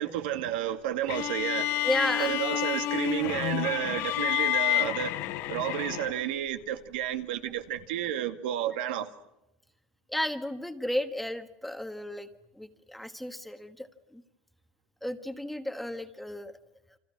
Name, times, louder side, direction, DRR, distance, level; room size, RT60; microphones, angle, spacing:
voice 1, 0.0-1.7 2.2-5.2 5.5-9.1, right 11 dB, 85° right, 2.2 m, -31 dB
sound 1, 1.1-6.4, left 14 dB, 50° left, 1.2 m, -29 dB
voice 2, 1.8-2.3 10.1-12.3 12.5-14.2 15.0-16.5, left 1 dB, ahead, 1.4 m, -33 dB
29.5 x 25.5 x 6.1 m
supercardioid pair, 150°, 5 cm